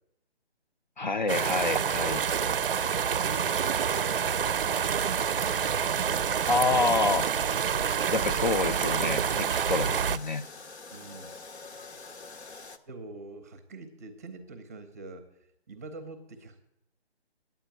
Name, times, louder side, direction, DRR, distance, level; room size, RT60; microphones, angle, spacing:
voice 1, 1.0-2.2 6.5-7.3 8.1-10.4, left 3 dB, 45° left, 9 dB, 0.4 m, -28 dB
sound 1, 1.3-10.2, right 7 dB, 55° right, 0.5 m, -27 dB
voice 2, 2.3-2.7 3.0-4.5 10.9-11.3 12.9-15.3 15.7-16.6, right 3 dB, 15° right, 9 dB, 0.7 m, -44 dB
sound 2, 5.1-12.8, left 3 dB, 80° left, 1.3 m, -47 dB
9.1 x 8.5 x 9.1 m, 0.82 s
hypercardioid pair, 165°, 33 cm